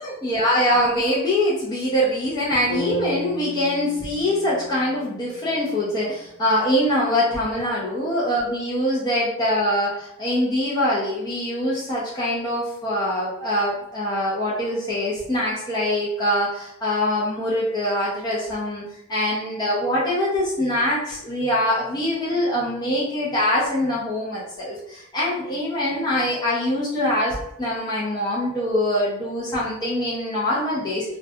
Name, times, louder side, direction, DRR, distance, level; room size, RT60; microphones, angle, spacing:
voice 1, 0.0-18.8 19.1-31.2, left 1 dB, 20° left, -8 dB, 0.5 m, -23 dB
sound 1, 2.7-6.8, left 2 dB, 70° left, 0.7 m, -35 dB
2.3 x 2.1 x 2.6 m, 0.82 s
head